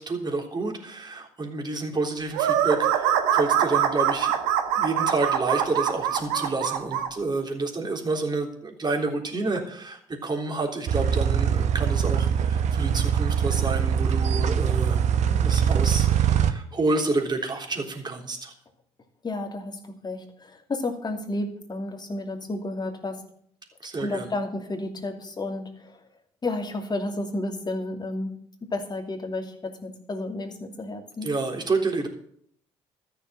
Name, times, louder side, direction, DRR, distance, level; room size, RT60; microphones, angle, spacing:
voice 1, 0.0-18.5 23.8-24.3 31.2-32.1, right 3 dB, 30° right, 2 dB, 3.5 m, -29 dB
sound 1, 2.3-7.1, right 9 dB, 75° right, 1.3 m, -23 dB
sound 2, 10.9-16.5, right 8 dB, 55° right, 1.1 m, -23 dB
voice 2, 19.2-23.2 24.0-26.0 26.4-28.4 28.7-31.3, left 2 dB, 30° left, 4 dB, 2.7 m, -32 dB
13.5 x 6.8 x 7.7 m, 0.65 s
hypercardioid pair, 55°, 14 cm